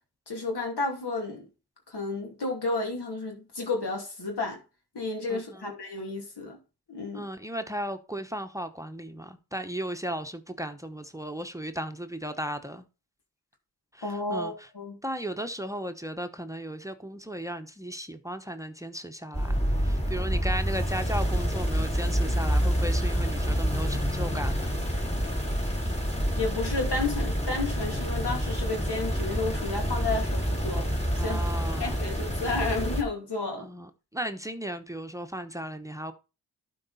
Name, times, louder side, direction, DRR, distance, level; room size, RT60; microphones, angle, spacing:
voice 1, 0.3-1.5 1.9-4.6 4.9-6.6 6.9-7.2 14.0-14.9 26.3-30.9 31.2-31.4 31.8-33.7, left 3 dB, 85° left, 2.6 m, -32 dB
voice 2, 5.3-5.7 7.1-12.8 13.9-14.7 15.0-24.8 31.2-32.0 33.6-36.1, equal, 10° right, 0.9 m, -36 dB
sound 1, 19.3-33.0, equal, 15° left, 2.4 m, -28 dB
12.0 x 4.6 x 4.2 m
cardioid pair, 50°, 39 cm